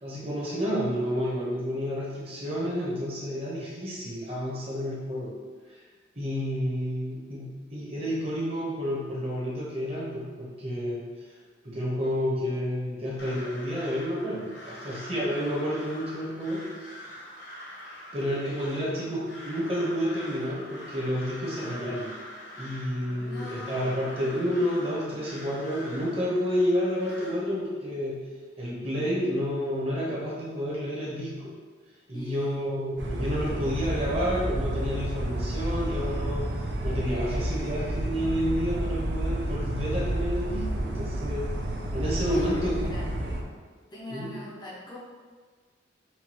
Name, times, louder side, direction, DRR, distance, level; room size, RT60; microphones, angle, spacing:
voice 1, 0.0-5.4 5.7-5.8 6.1-11.3 11.6-16.7 18.1-22.1 22.5-28.2 28.6-31.5 32.1-36.6 36.8-41.5 41.9-42.9 43.2-43.3 44.1-44.3, equal, 30° right, -6 dB, 1.0 m, -30 dB
Crow, 13.2-27.3, equal, 60° left, 0.8 m, -44 dB
voice 2, 23.1-24.4 32.1-32.7 42.3-43.1 43.9-45.0, left 1 dB, 20° left, -5 dB, 0.5 m, -42 dB
sound 1, 33.0-43.4, right 1 dB, 65° right, 0.5 m, -30 dB
5.8 x 2.3 x 3.0 m, 1.5 s
head